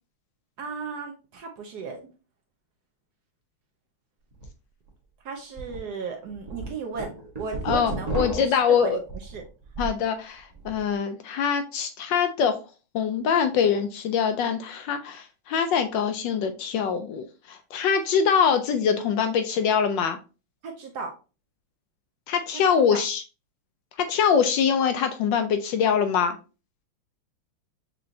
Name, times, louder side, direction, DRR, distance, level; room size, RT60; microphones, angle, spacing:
voice 1, 0.6-2.0 5.2-8.1 8.3-9.4 20.6-21.1 22.7-23.0, right 5 dB, 65° right, 3 dB, 1.1 m, -35 dB
sound 1, 4.3-4.5 4.9-5.0 5.6-5.8 6.2-10.0 10.4-10.8, right 3 dB, 25° right, 1.0 m, -33 dB
voice 2, 7.6-9.0 9.8-12.5 12.9-20.2 22.3-23.2 24.1-26.4, left 7 dB, 75° left, 8 dB, 1.1 m, -24 dB
6.2 x 3.0 x 2.6 m, 0.33 s
omnidirectional pair, 2.2 m